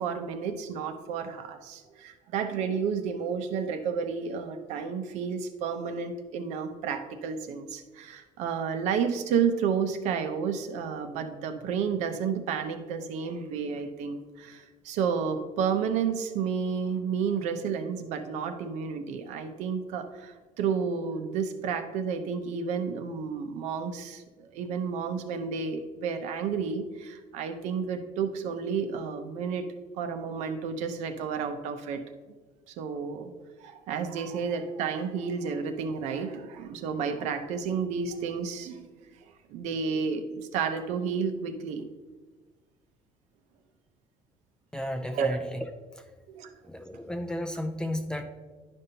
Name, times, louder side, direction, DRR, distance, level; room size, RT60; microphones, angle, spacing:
voice 1, 0.0-29.6 29.9-32.0 32.7-33.3 33.6-38.9 39.5-41.9 45.1-45.3 46.3-46.5, right 6 dB, 70° right, 7 dB, 0.7 m, -31 dB
voice 2, 44.7-45.6 46.6-48.2, left 1 dB, 5° left, 5 dB, 0.4 m, -33 dB
10.5 x 5.3 x 2.8 m, 1.3 s
cardioid pair, 155°, 12 cm